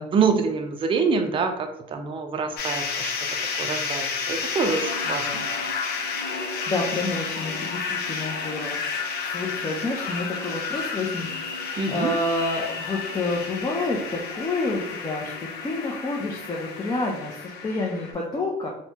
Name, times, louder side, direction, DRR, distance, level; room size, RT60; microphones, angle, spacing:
voice 1, 0.1-3.1 3.6-5.4 11.8-12.1, right 5 dB, 30° right, 6 dB, 0.4 m, -25 dB
sound 1, 2.6-18.1, left 5 dB, 75° left, 0.5 m, -31 dB
voice 2, 6.3-18.7, left 2 dB, 25° left, -2 dB, 0.5 m, -29 dB
3.2 x 2.1 x 2.8 m, 0.79 s
cardioid pair, 110°, 17 cm